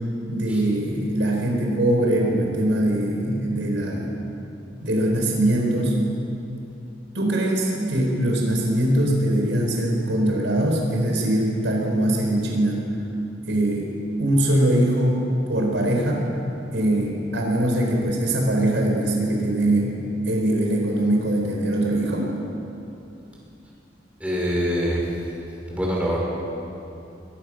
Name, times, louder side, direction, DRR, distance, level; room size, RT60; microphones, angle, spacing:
voice 1, 0.3-4.1 4.8-6.0 7.1-12.8 13.5-13.9 14.2-16.3 16.7-19.9 20.2-22.3, right 1 dB, 80° right, 0 dB, 4.7 m, -22 dB
voice 2, 24.2-25.0 25.7-26.2, equal, 5° right, -4 dB, 5.2 m, -24 dB
22.5 x 19.0 x 6.6 m, 2.8 s
head